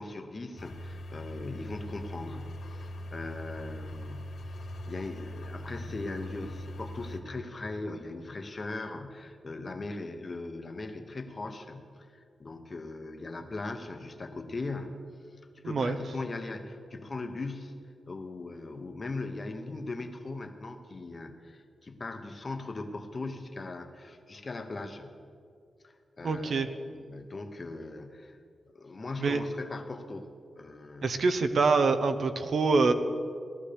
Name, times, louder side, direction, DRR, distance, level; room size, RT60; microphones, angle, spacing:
voice 1, 0.0-4.4 4.9-15.1 15.5-25.2 25.8-28.4 28.7-31.2, left 3 dB, 30° left, 6 dB, 0.8 m, -39 dB
sound 1, 0.6-7.2, left 1 dB, 75° left, 1.7 m, -41 dB
voice 2, 15.6-16.0 26.2-26.7 29.2-29.4 31.0-32.9, right 4 dB, 60° right, 8 dB, 0.7 m, -25 dB
18.0 x 13.0 x 3.4 m, 2.3 s
wide cardioid pair, 160°, 0 cm